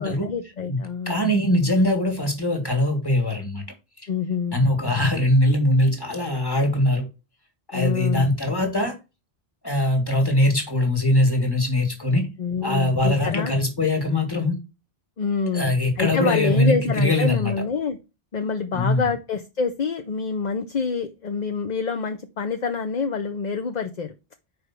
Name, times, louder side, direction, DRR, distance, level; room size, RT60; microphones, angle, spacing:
voice 1, 0.0-1.2 4.1-4.6 7.7-8.3 12.4-13.5 15.2-18.0 18.3-24.1, left 5 dB, 50° left, 0.7 m, -27 dB
voice 2, 1.1-3.6 4.5-7.1 7.7-8.9 9.6-12.3 12.6-14.6 15.5-17.5 18.7-19.0, left 1 dB, 20° left, 2.0 m, -21 dB
5.0 x 4.9 x 6.0 m
omnidirectional pair, 1.0 m